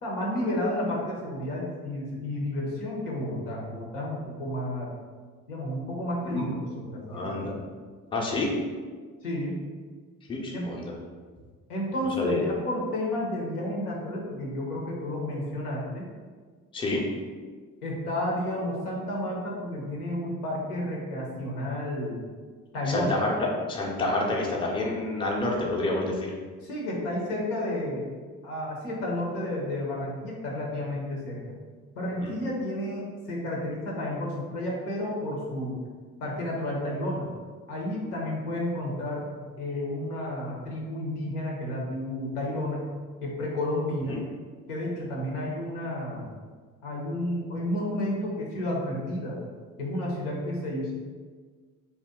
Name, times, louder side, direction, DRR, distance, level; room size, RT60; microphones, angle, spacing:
voice 1, 0.0-4.9 5.5-7.6 9.2-9.6 10.5-10.7 11.7-16.1 17.8-22.2 22.7-23.1 26.6-28.1 28.4-31.4 31.9-35.8 36.2-37.3 37.7-42.9 43.2-44.2 44.7-46.3 46.8-49.4 49.8-50.9, left 1 dB, 80° left, -3 dB, 0.8 m, -31 dB
voice 2, 7.1-7.5 8.1-8.5 10.3-10.9 12.2-12.4 16.7-17.0 22.9-26.3 32.2-32.3 44.0-44.2, left 2 dB, 10° left, -2 dB, 0.5 m, -28 dB
2.7 x 2.2 x 3.6 m, 1.5 s
figure-of-eight pair, 50°, 45 cm